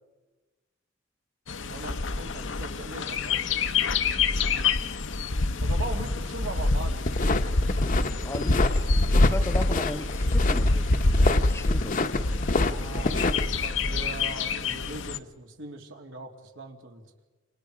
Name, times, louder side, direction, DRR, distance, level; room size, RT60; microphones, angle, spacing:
Bird, 1.5-15.2, left 3 dB, 70° left, 0.9 m, -26 dB
voice 1, 1.7-3.7 5.6-7.1 9.1-9.4 12.6-17.0, right 2 dB, 85° right, 2 dB, 3.0 m, -40 dB
sound 1, 6.9-13.7, left 3 dB, 45° left, 0.9 m, -29 dB
voice 2, 8.2-8.6 9.1-12.0, left 1 dB, 15° left, 10 dB, 0.7 m, -36 dB
29.5 x 27.0 x 5.0 m, 1.2 s
head